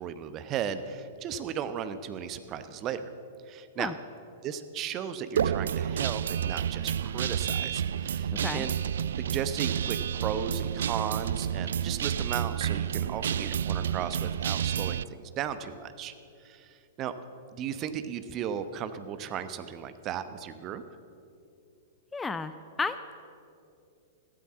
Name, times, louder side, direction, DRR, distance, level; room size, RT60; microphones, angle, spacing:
voice 1, 0.0-3.0 3.5-3.9 4.4-8.7 9.2-10.0 10.2-16.1 16.4-17.1 17.5-20.8, right 8 dB, 30° right, 11 dB, 0.9 m, -35 dB
Guitar, 5.4-15.0, right 9 dB, 60° right, 0.3 m, -30 dB
voice 2, 22.1-22.5 22.8-23.2, left 4 dB, 10° left, 11 dB, 0.5 m, -32 dB
15.0 x 12.5 x 7.5 m, 2.6 s
figure-of-eight pair, 105°, 0 cm